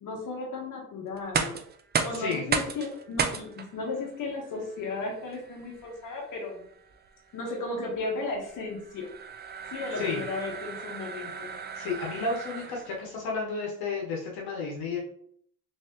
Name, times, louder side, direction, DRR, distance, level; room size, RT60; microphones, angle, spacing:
voice 1, 0.0-1.6 2.0-6.6 7.3-9.1 9.7-11.5, left 3 dB, 55° left, -2 dB, 1.2 m, -35 dB
sound 1, 1.2-13.1, right 5 dB, 30° right, 0.4 m, -35 dB
voice 2, 2.1-2.5 10.0-10.2 11.8-15.0, left 4 dB, 80° left, -2 dB, 1.0 m, -32 dB
3.2 x 3.2 x 2.9 m, 0.64 s
supercardioid pair, 80°, 37 cm